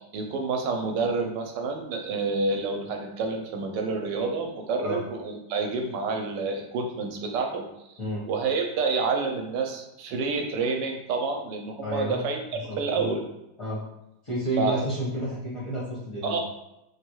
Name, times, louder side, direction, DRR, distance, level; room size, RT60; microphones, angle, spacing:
voice 1, 0.1-7.7 8.3-12.4 12.8-13.2 14.6-14.8 16.2-16.4, right 4 dB, 75° right, 3 dB, 1.1 m, -28 dB
voice 2, 11.8-12.2 12.5-13.1 13.6-13.8 14.2-16.4, right 1 dB, 30° left, -9 dB, 0.5 m, -31 dB
3.2 x 2.3 x 3.0 m, 0.87 s
omnidirectional pair, 2.0 m